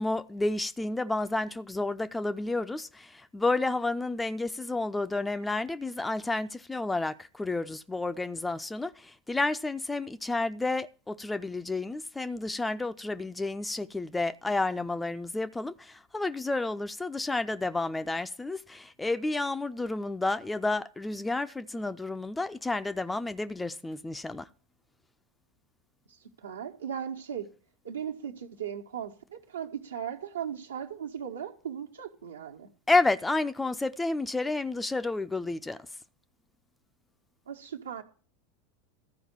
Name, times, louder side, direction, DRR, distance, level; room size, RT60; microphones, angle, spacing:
voice 1, 0.0-24.5 32.9-35.8, left 2 dB, 10° left, 0.5 m, -30 dB
voice 2, 26.1-27.5 27.8-32.7 37.5-38.0, right 8 dB, 70° right, 1.3 m, -37 dB
13.5 x 5.1 x 7.4 m
figure-of-eight pair, 80°, 0 cm